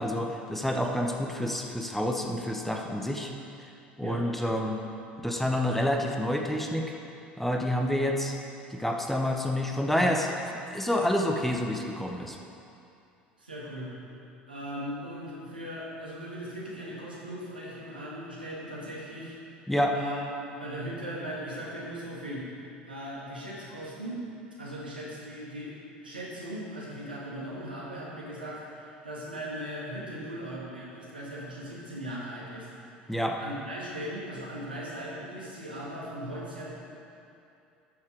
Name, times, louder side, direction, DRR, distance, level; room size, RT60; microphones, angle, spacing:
voice 1, 0.0-3.3 3.6-3.7 4.0-4.8 5.2-6.9 7.4-8.3 8.7-10.3 10.7-12.4 19.7-20.0 33.1-33.4, left 1 dB, 5° left, 2 dB, 1.0 m, -28 dB
voice 2, 13.4-13.9 14.5-19.4 19.9-22.5 22.9-24.2 24.6-25.7 26.0-32.7 33.4-36.6, equal, 85° right, -6 dB, 2.4 m, -38 dB
13.0 x 7.2 x 5.0 m, 2.7 s
figure-of-eight pair, 70°, 5 cm